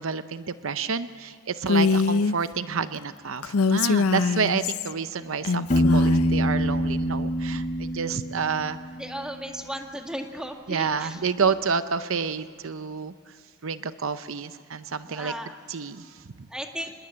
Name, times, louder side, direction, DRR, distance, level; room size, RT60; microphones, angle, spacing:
voice 1, 0.0-8.8 10.7-13.1 13.6-15.3 15.7-16.5, right 5 dB, 65° right, 12 dB, 0.7 m, -29 dB
Female speech woman speaking, 1.7-2.4 3.4-4.9 5.4-6.3, left 4 dB, 90° left, 0.7 m, -23 dB
Piano, 5.7-9.4, equal, 35° left, 0.6 m, -25 dB
voice 2, 6.2-6.8 7.9-8.3 9.0-11.5 15.1-15.5 16.5-16.9, equal, 5° right, 3 dB, 1.9 m, -37 dB
26.5 x 21.0 x 8.6 m, 2.1 s
head